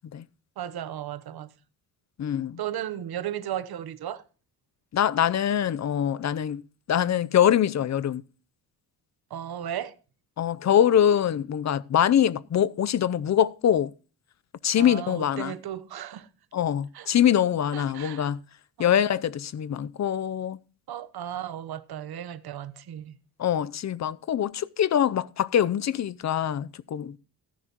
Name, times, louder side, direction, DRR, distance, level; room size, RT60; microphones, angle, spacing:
voice 1, 0.6-1.5 2.6-4.2 9.3-9.9 14.8-16.3 16.9-17.1 17.7-18.3 20.9-23.2, right 10 dB, 60° right, 1.1 m, -35 dB
voice 2, 2.2-2.6 4.9-6.6 6.9-8.2 10.4-13.9 14.6-15.5 16.5-18.4 18.8-20.6 23.4-27.2, left 9 dB, 40° left, 0.6 m, -24 dB
14.5 x 10.0 x 3.0 m
cardioid pair, 95°, 41 cm